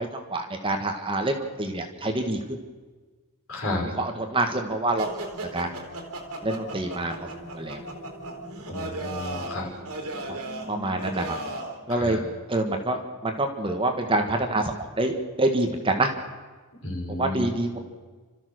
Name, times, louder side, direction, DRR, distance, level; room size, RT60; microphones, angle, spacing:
voice 1, 0.0-2.6 3.9-5.2 5.5-5.7 6.4-7.1 7.5-7.8 10.7-11.3 11.9-12.2 12.5-16.1 17.1-17.8, right 2 dB, 25° right, 4 dB, 1.6 m, -26 dB
voice 2, 3.5-3.8 8.7-9.7 11.9-12.2 16.8-17.5, left 1 dB, 65° left, 0 dB, 6.2 m, -32 dB
sound 1, 5.0-11.8, right 1 dB, 80° right, 3.2 m, -36 dB
30.0 x 13.5 x 6.5 m, 1.4 s
head